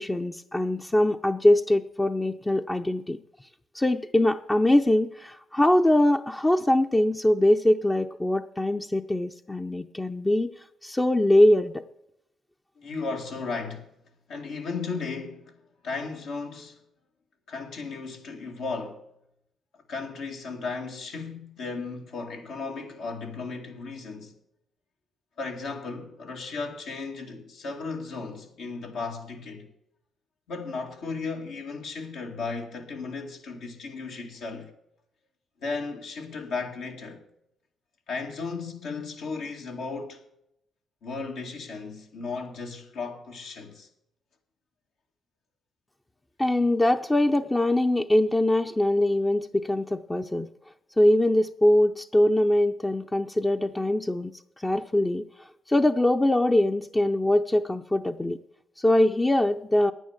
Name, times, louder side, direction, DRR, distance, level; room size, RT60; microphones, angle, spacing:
voice 1, 0.0-3.2 3.7-10.5 10.8-11.8 46.4-50.5 51.0-55.3 55.7-58.4 58.8-59.9, left 1 dB, 20° left, 0.7 m, -22 dB
voice 2, 12.8-13.9 14.3-16.8 17.5-19.0 19.9-24.4 25.4-29.7 30.5-34.7 35.6-37.2 38.1-40.2 41.0-43.9, left 4 dB, 75° left, 2.3 m, -35 dB
9.8 x 9.2 x 7.3 m
supercardioid pair, 55°, 0 cm